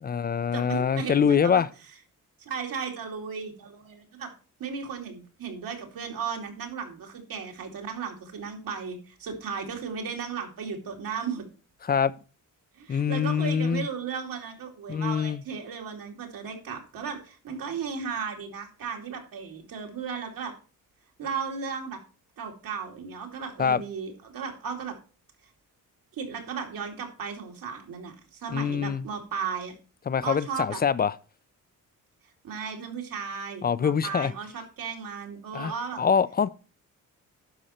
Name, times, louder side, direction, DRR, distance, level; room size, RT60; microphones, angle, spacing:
voice 1, 0.0-1.7 11.9-12.1 12.9-13.9 14.9-15.4 23.6-23.8 28.5-29.0 30.1-31.1 33.6-34.3 35.5-35.7 36.0-36.5, left 7 dB, 30° left, 0.4 m, -24 dB
voice 2, 0.5-1.6 2.4-4.3 4.6-11.4 12.7-20.5 21.2-22.0 22.4-25.0 26.1-29.8 30.2-30.8 32.4-36.0, right 6 dB, 80° right, 2.6 m, -35 dB
11.5 x 5.4 x 4.3 m
cardioid pair, 130°, 34 cm